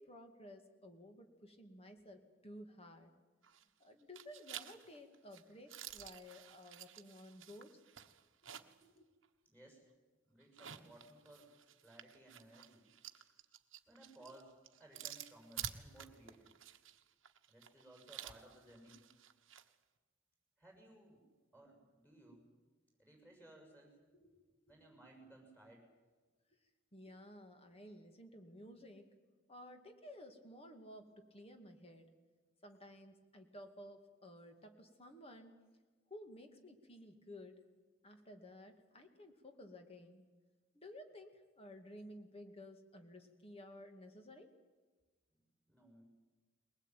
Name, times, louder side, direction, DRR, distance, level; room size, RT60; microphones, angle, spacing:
voice 1, 0.0-3.1 3.8-7.8 8.8-9.1 24.2-24.8 26.9-29.1 29.5-32.1 32.6-35.6 36.1-37.6 38.0-40.2 40.7-44.5, left 1 dB, 30° left, 6 dB, 2.3 m, -55 dB
sound 1, 3.4-3.8 4.1-8.9 9.2-9.3 10.4-19.7, right 10 dB, 80° right, 1.2 m, -51 dB
voice 2, 9.5-9.8 10.3-11.5 11.8-12.8 13.9-16.5 17.5-19.0 20.6-21.2 21.5-22.5 23.0-24.0 24.7-25.9 45.7-46.0, right 1 dB, 10° left, 1 dB, 6.5 m, -60 dB
22.0 x 19.5 x 9.2 m, 1.3 s
head